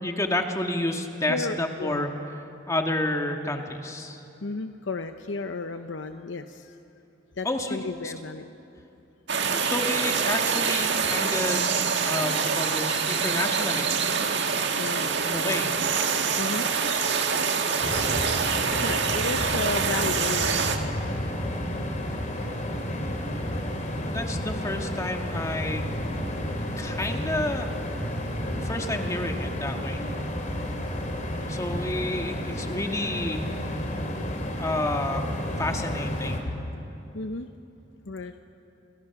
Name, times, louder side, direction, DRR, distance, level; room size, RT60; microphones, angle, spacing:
voice 1, 0.0-2.1 2.7-4.2 7.4-8.1 9.6-11.8 12.0-13.9 15.2-15.7 24.1-25.8 26.8-27.7 28.5-30.0 31.5-33.5 34.6-35.3 35.6-36.4, left 1 dB, 15° left, 3 dB, 1.7 m, -30 dB
voice 2, 1.3-2.1 4.4-6.8 7.4-8.5 14.8-15.1 16.4-16.7 18.8-20.8 28.3-28.7 37.1-37.5 38.1-38.3, left 3 dB, 70° left, 7 dB, 0.8 m, -33 dB
sound 1, 9.3-20.8, right 6 dB, 65° right, 1.8 m, -25 dB
sound 2, 17.8-36.4, equal, 40° left, 3.1 m, -31 dB
28.5 x 27.5 x 6.0 m, 2.8 s
head